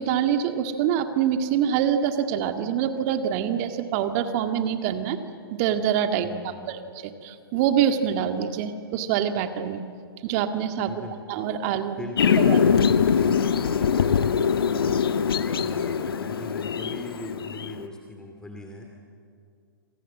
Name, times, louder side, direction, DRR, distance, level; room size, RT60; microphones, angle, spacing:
voice 1, 0.0-5.2 5.5-9.8 10.2-10.9 11.3-12.0 12.5-12.6, right 9 dB, 40° right, 7 dB, 2.0 m, -25 dB
voice 2, 6.2-6.8 10.9-11.2 12.0-19.0, left 2 dB, 5° left, 2 dB, 2.6 m, -40 dB
sound 1, 12.2-17.9, left 7 dB, 70° left, 1.2 m, -23 dB
28.0 x 26.5 x 7.5 m, 2.3 s
figure-of-eight pair, 115°, 13 cm